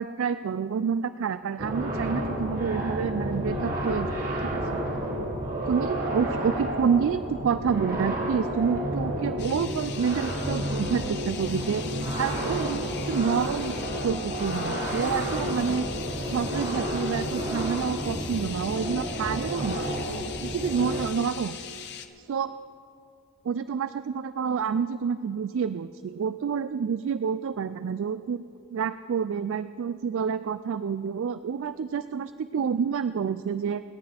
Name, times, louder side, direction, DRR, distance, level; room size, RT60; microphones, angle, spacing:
voice 1, 0.0-4.1 4.4-4.6 5.7-11.8 12.2-13.7 14.0-15.9 16.3-19.9 20.4-21.6 22.3-22.5 23.4-28.4 28.7-33.8, right 6 dB, 60° right, 13 dB, 0.3 m, -28 dB
sound 1, 1.6-21.0, equal, 40° right, 2.5 m, -31 dB
sound 2, 9.4-22.1, left 9 dB, 50° left, 0.8 m, -41 dB
27.5 x 10.5 x 3.4 m, 2.5 s
head